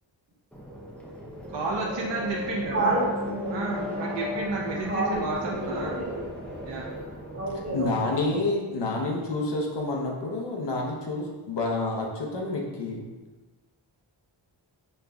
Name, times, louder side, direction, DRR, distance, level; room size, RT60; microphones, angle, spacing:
sound 1, 0.5-7.9, left 2 dB, 5° left, 0.5 m, -36 dB
voice 1, 1.5-3.0 3.5-6.0 6.6-6.8, right 3 dB, 65° right, -2 dB, 0.5 m, -31 dB
voice 2, 2.7-4.4 4.9-6.3 7.3-8.4 8.7-8.9, right 2 dB, 30° right, -10 dB, 1.4 m, -31 dB
voice 3, 7.7-13.1, left 2 dB, 60° left, -1 dB, 0.8 m, -29 dB
5.2 x 2.5 x 2.3 m, 1.2 s
wide cardioid pair, 150°, 47 cm